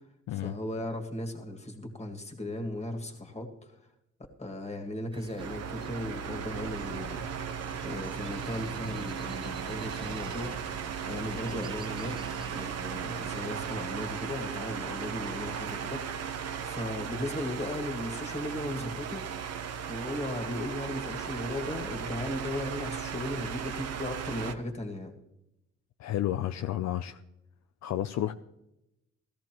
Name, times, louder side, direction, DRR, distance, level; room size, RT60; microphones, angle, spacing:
voice 1, 0.3-3.7 4.4-7.3 7.8-10.6 11.1-12.2 12.5-16.0 16.6-19.2 19.5-25.1, left 1 dB, 20° left, 3 dB, 2.1 m, -36 dB
sound 1, 5.1-13.7, right 4 dB, 15° right, 0.5 m, -46 dB
sound 2, 5.4-24.5, right 7 dB, 55° right, 1.0 m, -37 dB
voice 2, 26.0-27.2 27.8-28.3, left 12 dB, 65° left, 8 dB, 0.6 m, -31 dB
17.0 x 13.5 x 3.1 m, 0.89 s
cardioid pair, 90°, 30 cm